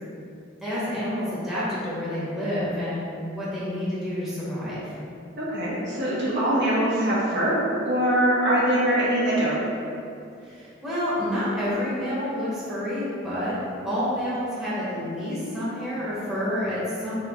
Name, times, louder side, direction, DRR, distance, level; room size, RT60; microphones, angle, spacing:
voice 1, 0.6-4.8 10.4-13.6 13.8-17.2, left 1 dB, ahead, -11 dB, 1.1 m, -29 dB
voice 2, 5.4-7.6 7.8-9.6, right 1 dB, 55° right, -8 dB, 1.3 m, -23 dB
4.5 x 3.2 x 3.7 m, 2.5 s
head